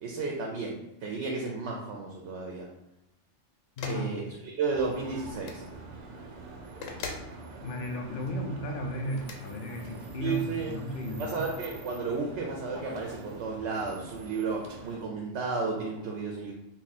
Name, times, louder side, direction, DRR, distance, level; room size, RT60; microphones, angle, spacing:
voice 1, 0.0-2.7 3.9-5.6 10.2-10.8 11.2-16.5, right 4 dB, 70° right, 0 dB, 0.8 m, -33 dB
sound 1, 3.8-4.1 5.3-5.6 6.8-7.3 9.1-9.4, left 4 dB, 90° left, 1.0 m, -39 dB
voice 2, 3.8-4.1 7.6-11.4, equal, 60° left, 2 dB, 0.6 m, -34 dB
sound 2, 4.7-15.0, right 3 dB, 85° right, 0.4 m, -45 dB
2.7 x 2.4 x 4.0 m, 0.86 s
omnidirectional pair, 1.3 m